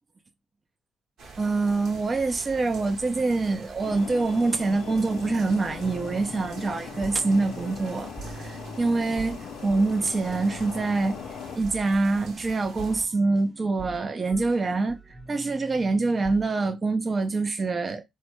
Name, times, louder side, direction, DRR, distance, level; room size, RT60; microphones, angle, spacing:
sound 1, 1.2-13.1, right 4 dB, 70° right, 1.0 m, -46 dB
voice 1, 1.4-11.2 11.6-18.0, right 3 dB, 35° right, 0.5 m, -25 dB
sound 2, 3.8-11.6, left 8 dB, 75° left, 0.3 m, -40 dB
sound 3, 5.6-16.5, right 3 dB, 5° right, 0.8 m, -45 dB
3.2 x 2.1 x 3.1 m
cardioid pair, 90°, 0 cm